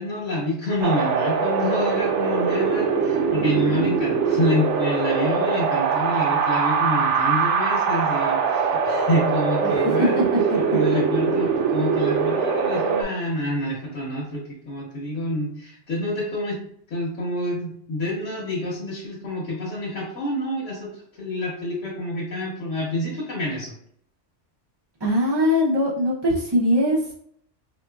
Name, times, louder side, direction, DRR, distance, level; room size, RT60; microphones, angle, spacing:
voice 1, 0.0-10.2 10.5-16.6 16.9-23.7, left 1 dB, 85° left, -7 dB, 1.3 m, -28 dB
Wind, 0.8-13.0, right 5 dB, 80° right, 0.9 m, -22 dB
voice 2, 9.8-10.2 25.0-27.1, left 1 dB, 30° right, -6 dB, 0.5 m, -21 dB
4.0 x 2.9 x 2.2 m, 0.64 s
omnidirectional pair, 1.2 m